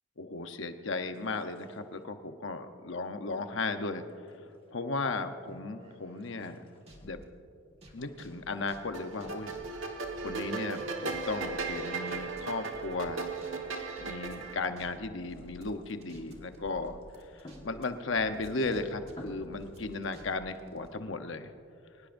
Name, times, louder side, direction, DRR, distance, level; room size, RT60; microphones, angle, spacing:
voice 1, 0.2-4.0 4.7-6.6 7.0-7.2 7.9-9.5 10.2-13.3 14.0-17.0 17.6-21.5, left 3 dB, 65° left, 8 dB, 0.9 m, -35 dB
sound 1, 1.1-2.3 3.3-4.8 5.0-5.6 5.9-9.0 9.6-11.3 11.6-14.3 14.7-18.2 18.7-18.8 19.1-19.8, left 1 dB, 25° left, 1.5 m, -57 dB
sound 2, 5.5-7.2 7.7-10.9 11.1-12.4 12.7-13.5 13.8-17.9 18.2-20.9, equal, 30° right, 1.9 m, -53 dB
sound 3, 8.9-14.6, right 4 dB, 75° right, 1.4 m, -36 dB
23.5 x 19.0 x 2.6 m, 2.7 s
head